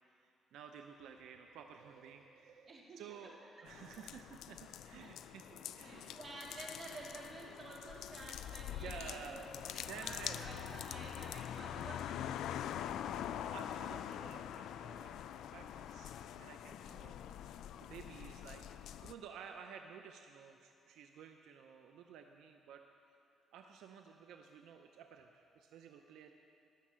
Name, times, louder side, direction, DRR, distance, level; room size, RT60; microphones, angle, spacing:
voice 1, 0.1-6.2 8.8-9.4 9.9-10.7 13.1-23.2 23.5-26.3, right 7 dB, 85° right, 5 dB, 0.6 m, -53 dB
voice 2, 2.7-3.9 5.0-5.1 5.5-12.4, right 2 dB, 40° right, -3 dB, 3.2 m, -51 dB
sound 1, 3.7-19.1, left 10 dB, 80° left, 0.4 m, -45 dB
19.0 x 6.6 x 7.5 m, 2.6 s
cardioid pair, 90°, 0 cm